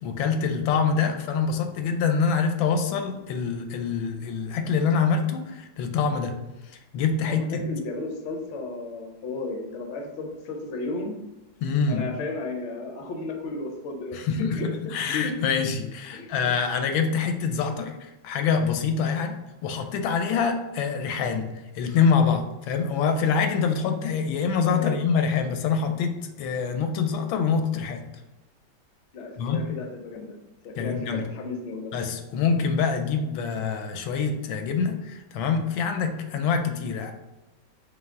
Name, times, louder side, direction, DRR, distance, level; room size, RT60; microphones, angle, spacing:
voice 1, 0.0-6.3 6.7-7.6 11.6-12.0 14.1-19.4 19.6-21.5 21.7-28.0 29.4-29.6 30.8-31.2 31.9-37.1, left 5 dB, 90° left, 6 dB, 1.4 m, -25 dB
voice 2, 7.3-11.2 11.9-14.7 16.1-16.5 20.3-20.6 24.7-25.0 29.1-30.4 30.6-31.9, left 2 dB, 65° left, 2 dB, 0.7 m, -34 dB
5.5 x 2.2 x 3.5 m, 1.1 s
omnidirectional pair, 2.1 m